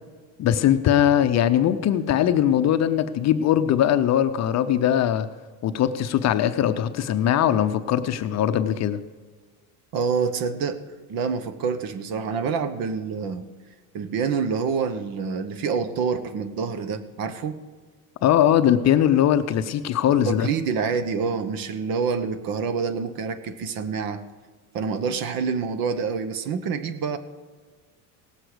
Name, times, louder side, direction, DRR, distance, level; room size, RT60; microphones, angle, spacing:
voice 1, 0.4-5.3 5.6-9.0 18.2-20.5, left 10 dB, 40° left, 9 dB, 0.7 m, -20 dB
voice 2, 9.9-10.8 11.1-13.5 13.9-17.6 20.2-24.2 24.7-27.2, right 5 dB, 55° right, 12 dB, 1.1 m, -27 dB
18.0 x 7.7 x 4.9 m, 1.5 s
supercardioid pair, 115°, 43 cm